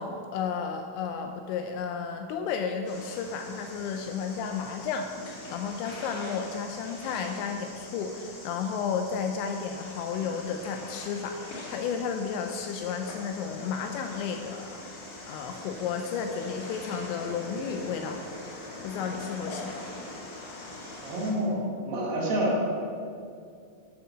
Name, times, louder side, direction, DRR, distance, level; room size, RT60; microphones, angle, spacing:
voice 1, 0.0-14.8 15.3-18.2 18.8-19.9, left 6 dB, 85° left, 5 dB, 2.6 m, -33 dB
sound 1, 2.9-21.3, left 2 dB, 55° left, 2.3 m, -43 dB
voice 2, 21.0-22.6, equal, 60° right, -4 dB, 3.0 m, -28 dB
9.5 x 6.1 x 6.2 m, 2.3 s
omnidirectional pair, 5.7 m